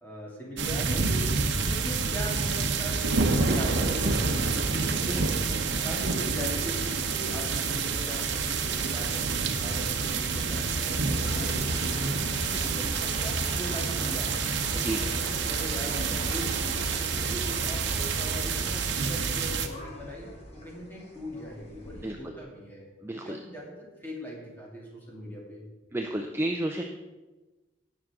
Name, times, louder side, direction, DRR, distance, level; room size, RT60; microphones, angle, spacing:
voice 1, 0.0-1.3 1.6-5.3 5.8-14.3 14.7-22.9 23.1-25.6, equal, 10° left, -5 dB, 2.8 m, -40 dB
sound 1, 0.6-19.7, right 4 dB, 75° right, 0.9 m, -28 dB
sound 2, 11.1-22.1, left 1 dB, 35° left, 1.9 m, -45 dB
voice 2, 23.0-23.4 25.9-26.8, right 1 dB, 10° right, 2 dB, 0.5 m, -30 dB
18.0 x 6.2 x 3.7 m, 1.2 s
head